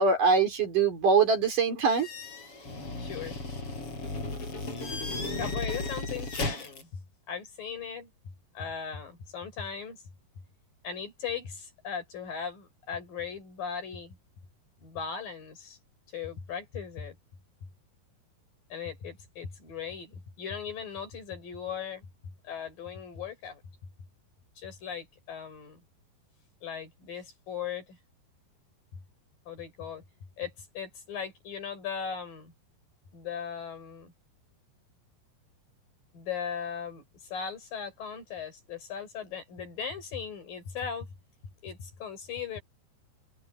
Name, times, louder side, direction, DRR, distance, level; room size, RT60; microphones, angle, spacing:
voice 1, 0.0-2.1, right 4 dB, 50° right, 5.4 m, -23 dB
sound 1, 1.9-6.8, left 3 dB, 30° left, 8.0 m, -35 dB
voice 2, 3.0-3.4 5.4-7.0 7.3-8.1 8.5-10.0 10.8-14.2 14.8-15.8 16.1-17.2 18.7-22.1 22.4-23.6 24.6-25.8 26.6-28.0 29.5-30.0 30.4-32.5 33.1-34.1 36.1-41.1 41.6-42.6, left 7 dB, 55° left, 6.6 m, -38 dB
open air
omnidirectional pair, 5.0 m